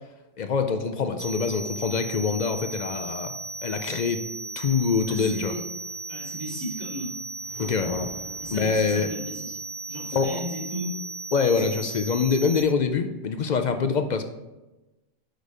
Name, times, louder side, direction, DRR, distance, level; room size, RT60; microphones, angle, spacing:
voice 1, 0.4-3.4 3.6-4.3 4.6-5.5 7.6-8.1 8.5-9.1 10.1-10.4 11.3-14.2, left 5 dB, 55° left, 7 dB, 0.6 m, -25 dB
sound 1, 1.2-12.6, right 3 dB, 80° right, 1.5 m, -36 dB
voice 2, 5.1-5.6 6.1-7.2 8.4-9.6 9.9-11.0 11.5-11.7, equal, 25° right, -5 dB, 2.6 m, -35 dB
sound 2, 7.3-9.9, right 2 dB, 50° right, 2.0 m, -47 dB
6.5 x 5.3 x 4.9 m, 1.1 s
omnidirectional pair, 1.1 m